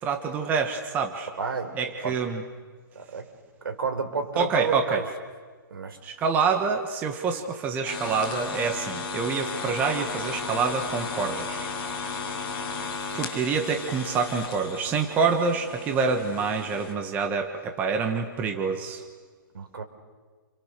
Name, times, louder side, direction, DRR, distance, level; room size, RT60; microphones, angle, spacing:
voice 1, 0.0-1.3 1.8-2.4 4.4-5.0 6.0-11.7 13.1-19.0, right 5 dB, 15° right, 4 dB, 1.5 m, -27 dB
voice 2, 1.4-2.2 2.9-3.3 3.6-5.0 5.7-6.0 19.5-19.8, right 5 dB, 75° right, 5 dB, 4.9 m, -31 dB
sound 1, 7.8-16.9, left 4 dB, 25° left, 5.7 m, -35 dB
30.0 x 28.0 x 6.9 m, 1.5 s
hypercardioid pair, 165°, 12 cm